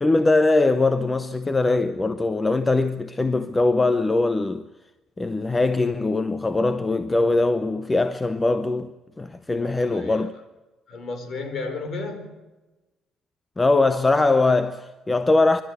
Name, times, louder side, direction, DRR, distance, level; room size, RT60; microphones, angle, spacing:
voice 1, 0.0-4.6 5.2-8.9 9.2-10.3 13.6-15.6, left 2 dB, 15° left, 0.7 m, -21 dB
voice 2, 9.6-10.3 10.9-12.3, left 3 dB, 45° left, 4.6 m, -33 dB
29.0 x 12.5 x 8.2 m
cardioid pair, 160°, 0 cm